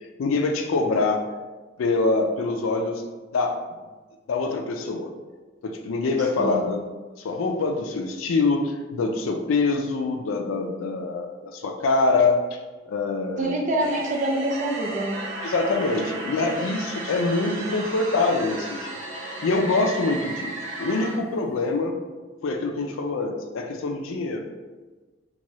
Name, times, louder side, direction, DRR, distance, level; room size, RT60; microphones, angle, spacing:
voice 1, 0.2-1.3 1.8-3.0 3.3-3.6 4.3-5.1 5.6-6.8 7.2-12.4 12.9-13.5 15.4-18.9 19.4-22.0 22.4-24.5, left 3 dB, 90° left, 4 dB, 0.4 m, -24 dB
voice 2, 6.4-6.7 13.4-15.2 16.0-16.8, right 1 dB, 40° right, -1 dB, 0.4 m, -27 dB
sound 1, 13.8-21.2, right 2 dB, 85° right, 0.6 m, -34 dB
3.0 x 2.2 x 2.7 m, 1.3 s
head